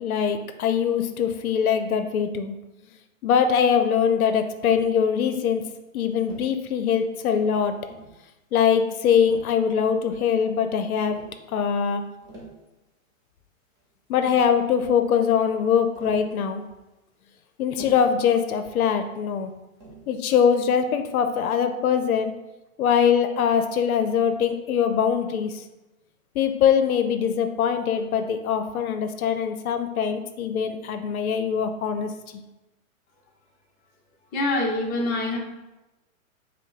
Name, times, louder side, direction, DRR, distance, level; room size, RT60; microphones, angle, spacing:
voice 1, 0.0-2.6 3.2-5.6 5.9-7.8 8.5-11.2 11.5-12.0 14.1-16.6 17.6-19.5 20.1-22.3 22.8-25.6 26.4-32.4, left 7 dB, 80° left, 7 dB, 0.6 m, -22 dB
Tap, 4.6-5.0 6.3-6.6 7.6-8.2 9.3-10.0 11.0-11.4 12.1-12.6 13.8-13.9 14.1-14.6 15.9-16.3 17.7-18.2 19.8-20.1, right 3 dB, 10° right, 0.3 m, -43 dB
voice 2, 34.3-35.4, left 2 dB, 20° left, -1 dB, 0.7 m, -25 dB
5.3 x 2.0 x 3.8 m, 1.0 s
hypercardioid pair, 130°, 42 cm